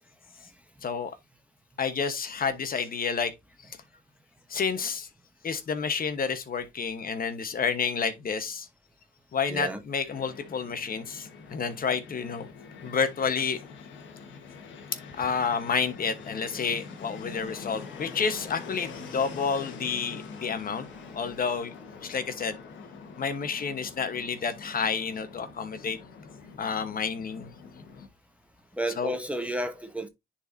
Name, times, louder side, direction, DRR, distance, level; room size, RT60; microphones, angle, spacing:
voice 1, 1.8-3.3 4.5-5.1 5.4-8.7 9.3-12.5 12.8-13.6 15.2-20.9 21.1-21.7 22.0-22.6 23.2-26.0 26.6-27.5 29.0-29.1, left 6 dB, 45° left, 1.1 m, -30 dB
voice 2, 9.5-9.8 28.7-30.1, right 1 dB, 5° right, 1.0 m, -31 dB
Fixed-wing aircraft airplane, 10.1-28.1, left 5 dB, 70° left, 1.4 m, -44 dB
10.0 x 4.3 x 2.7 m
cardioid pair, 90°, 20 cm